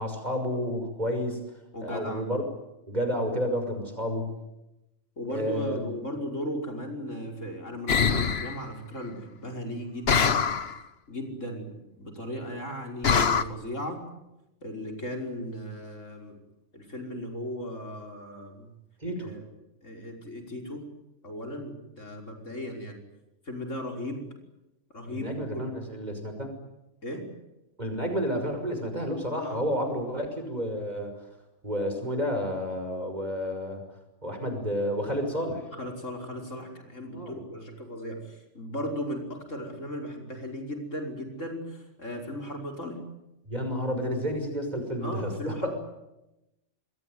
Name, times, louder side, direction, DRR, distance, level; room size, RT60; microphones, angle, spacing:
voice 1, 0.0-1.4 1.8-2.4 2.9-4.3 5.3-5.8 19.0-19.4 25.0-26.5 27.8-31.1 31.6-33.8 34.2-35.7 37.1-37.4 43.5-45.7, equal, 35° right, 6 dB, 6.0 m, -30 dB
voice 2, 1.7-2.2 5.2-10.5 11.1-14.0 14.6-16.4 16.7-18.7 19.2-19.5 19.8-20.9 21.2-23.0 23.5-24.3 24.9-25.7 27.0-27.3 29.3-29.7 35.7-43.1 45.0-45.7, equal, 90° left, 2 dB, 5.8 m, -36 dB
sound 1, 7.9-8.6 10.1-10.8 13.0-13.4, left 6 dB, 55° left, 1.4 m, -23 dB
27.5 x 21.5 x 9.6 m, 0.94 s
omnidirectional pair, 1.3 m